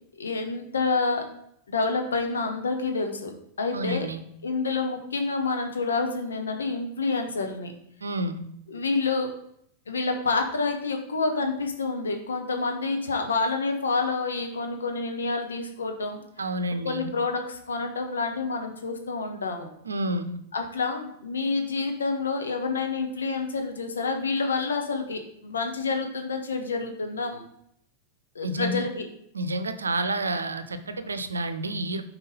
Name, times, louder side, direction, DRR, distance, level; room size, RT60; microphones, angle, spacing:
voice 1, 0.2-1.3 1.7-3.3 3.6-4.1 4.4-7.7 8.7-9.4 9.9-16.2 16.8-19.7 20.5-27.4 28.3-29.0, left 4 dB, 70° left, 4 dB, 1.1 m, -28 dB
voice 2, 3.7-4.2 8.0-8.4 16.4-17.1 19.8-20.4 28.4-28.8 29.3-32.0, right 1 dB, 75° right, 10 dB, 0.6 m, -29 dB
5.4 x 4.6 x 5.2 m, 0.70 s
figure-of-eight pair, 90°, 0 cm